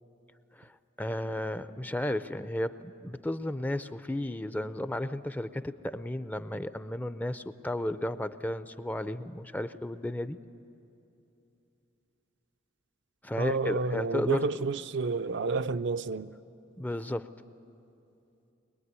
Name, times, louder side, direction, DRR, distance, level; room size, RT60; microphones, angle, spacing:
voice 1, 0.5-10.4 13.2-14.4 16.8-17.3, left 1 dB, 10° left, 0.5 m, -33 dB
voice 2, 13.4-16.3, right 4 dB, 65° right, 0.5 m, -30 dB
22.5 x 22.5 x 9.6 m
head